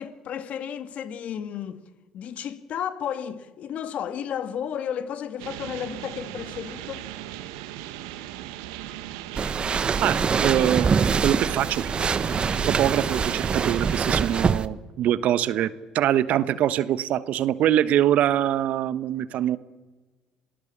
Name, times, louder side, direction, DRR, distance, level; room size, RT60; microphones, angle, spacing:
voice 1, 0.0-1.8 2.1-7.0 16.5-16.8, left 9 dB, 60° left, 1.9 m, -33 dB
sound 1, 5.4-14.4, right 12 dB, 85° right, 1.5 m, -38 dB
sound 2, 9.4-14.7, right 6 dB, 40° right, 1.1 m, -24 dB
voice 2, 10.0-10.9 11.2-11.9 12.3-19.6, right 11 dB, 65° right, 1.1 m, -24 dB
27.5 x 19.0 x 7.4 m
hypercardioid pair, 65°, 3 cm